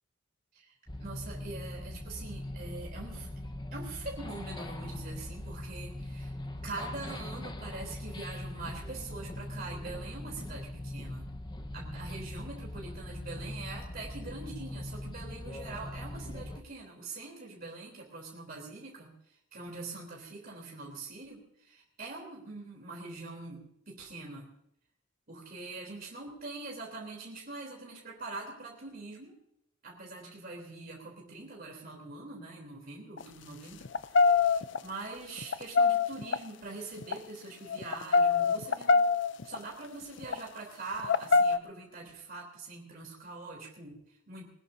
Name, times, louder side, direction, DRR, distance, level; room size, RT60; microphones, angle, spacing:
sound 1, 0.9-16.6, left 1 dB, 20° left, 1.1 m, -41 dB
voice 1, 1.0-3.3 3.7-6.3 6.6-11.3 11.7-24.5 25.3-29.4 29.8-39.0 39.4-44.4, right 3 dB, 45° right, -2 dB, 3.4 m, -43 dB
sound 2, 33.2-33.3 33.8-34.8 35.4-36.4 37.0-37.2 37.7-39.6 40.2-40.4 41.0-41.6, left 4 dB, 60° left, 0.5 m, -24 dB
21.5 x 19.5 x 2.7 m, 0.75 s
head